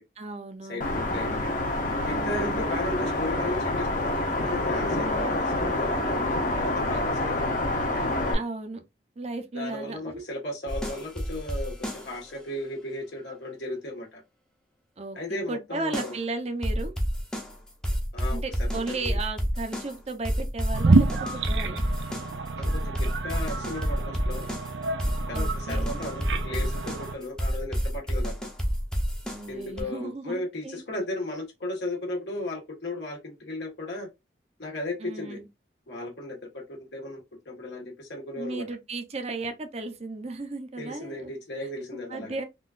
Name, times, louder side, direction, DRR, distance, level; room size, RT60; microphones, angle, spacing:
voice 1, 0.2-1.5 2.1-2.6 5.0-5.4 8.3-8.8 9.2-10.2 10.9-11.0 15.0-15.2 15.5-16.9 18.3-21.8 25.3-26.0 29.2-30.8 35.0-35.5 38.4-41.3 42.1-42.4, right 3 dB, 35° right, 0.6 m, -35 dB
voice 2, 0.7-1.5 2.0-4.2 4.4-7.5 9.5-14.2 15.1-16.1 18.1-19.1 22.6-24.5 25.3-28.3 29.5-34.1 34.6-35.4 35.9-38.7 40.8-42.4, left 2 dB, 85° left, 1.4 m, -35 dB
sound 1, 0.8-8.3, left 1 dB, 50° left, 0.8 m, -27 dB
sound 2, 10.7-12.3 15.9-16.2 16.6-29.8, equal, 5° left, 0.6 m, -29 dB
sound 3, 20.7-27.1, right 3 dB, 85° right, 0.5 m, -28 dB
3.7 x 2.4 x 2.4 m
head